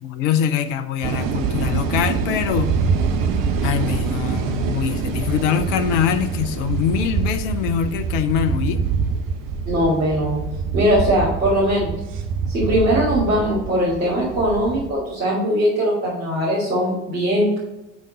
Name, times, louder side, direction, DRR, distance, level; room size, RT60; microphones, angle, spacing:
voice 1, 0.0-2.8 3.6-8.8, left 9 dB, 65° left, 11 dB, 0.8 m, -23 dB
sound 1, 1.0-14.9, right 5 dB, 55° right, 0.9 m, -25 dB
voice 2, 9.7-10.4 10.7-11.9 12.5-17.6, equal, 80° right, -10 dB, 2.8 m, -20 dB
10.5 x 3.8 x 4.1 m, 0.94 s
figure-of-eight pair, 60°, 40 cm